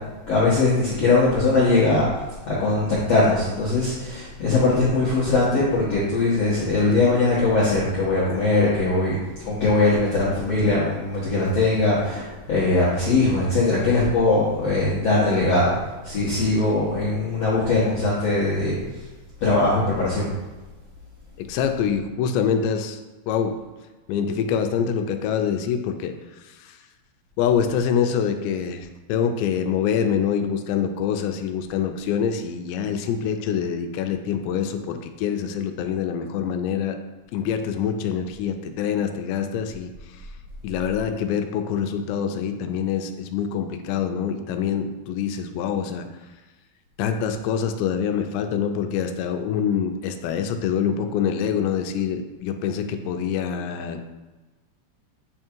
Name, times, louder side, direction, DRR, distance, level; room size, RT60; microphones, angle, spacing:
voice 1, 0.3-2.1 2.4-9.2 9.4-18.8 19.4-20.3, left 2 dB, 65° left, -9 dB, 1.6 m, -21 dB
voice 2, 21.4-23.0 23.3-23.5 24.1-26.1 26.6-26.8 27.4-37.0 37.3-39.9 40.6-46.1 47.0-54.1, left 7 dB, 85° left, 6 dB, 2.7 m, -25 dB
8.9 x 3.7 x 4.5 m, 1.2 s
omnidirectional pair, 5.2 m